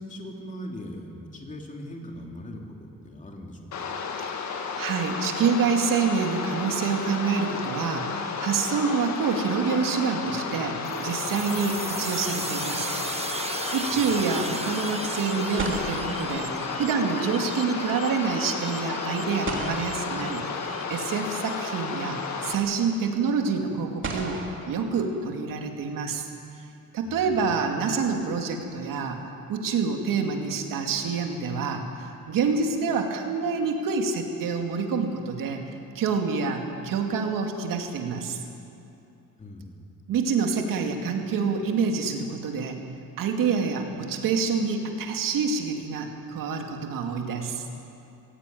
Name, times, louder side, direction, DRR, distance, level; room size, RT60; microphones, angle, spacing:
voice 1, 0.0-3.9 13.9-14.2 27.1-28.0 39.4-39.7, left 1 dB, 25° left, 1 dB, 2.8 m, -40 dB
sound 1, 3.7-22.5, left 5 dB, 60° left, 1.9 m, -33 dB
voice 2, 4.8-12.9 13.7-20.4 20.9-24.4 24.7-26.2 26.9-29.2 29.5-35.6 35.9-38.4 40.1-42.8 43.2-47.6, right 5 dB, 90° right, 3 dB, 2.5 m, -27 dB
sound 2, 10.8-22.3, right 3 dB, 20° right, 1.3 m, -37 dB
sound 3, 15.0-15.1 15.6-17.3 19.5-21.0 22.4-22.5 24.0-25.7, right 3 dB, 40° right, 3.0 m, -37 dB
20.5 x 16.5 x 9.3 m, 2.7 s
cardioid pair, 155°, 32 cm